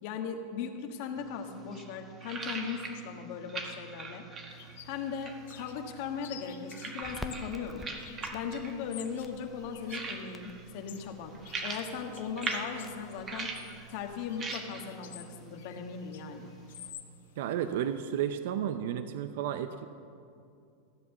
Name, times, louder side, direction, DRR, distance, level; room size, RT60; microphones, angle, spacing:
voice 1, 0.0-4.2 4.8-7.9 8.3-13.5 13.9-16.5, left 6 dB, 60° left, 4 dB, 1.5 m, -38 dB
sound 1, 1.2-16.9, right 4 dB, 30° right, 1.6 m, -43 dB
sound 2, 4.5-18.2, left 11 dB, 80° left, 0.9 m, -52 dB
Crackle, 7.0-14.3, left 1 dB, 5° left, 0.6 m, -50 dB
voice 2, 17.4-19.9, right 9 dB, 70° right, 10 dB, 0.6 m, -32 dB
14.0 x 8.5 x 7.1 m, 2.5 s
supercardioid pair, 135°, 0 cm